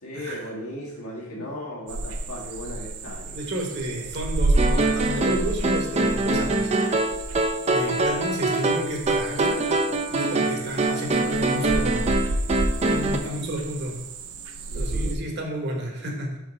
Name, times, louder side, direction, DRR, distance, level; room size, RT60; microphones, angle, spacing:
voice 1, 0.0-3.4 3.9-4.1 7.7-8.1 13.2-13.4 14.7-15.1, left 1 dB, 85° left, -3 dB, 1.7 m, -37 dB
sound 1, 1.9-15.1, right 2 dB, 80° right, 0.6 m, -30 dB
voice 2, 3.3-6.7 7.7-9.6 10.1-12.0 12.9-14.0 14.7-16.4, equal, 50° right, 1 dB, 1.2 m, -31 dB
sound 2, 4.6-13.2, right 2 dB, 30° right, 0.4 m, -24 dB
5.1 x 3.8 x 5.1 m, 0.96 s
head